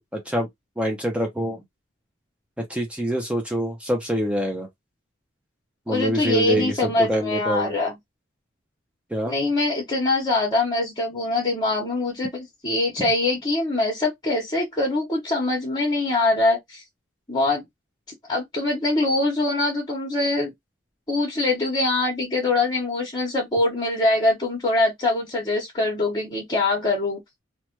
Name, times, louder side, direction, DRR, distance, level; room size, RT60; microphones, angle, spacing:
voice 1, 0.1-0.5 0.8-1.6 2.7-4.7 5.9-7.7 9.1-9.3, equal, 5° right, 0.5 m, -25 dB
voice 2, 5.9-7.9 9.3-16.8 17.3-17.6 18.3-20.5 21.1-27.2, left 2 dB, 25° left, 1.0 m, -23 dB
3.0 x 2.1 x 3.0 m
head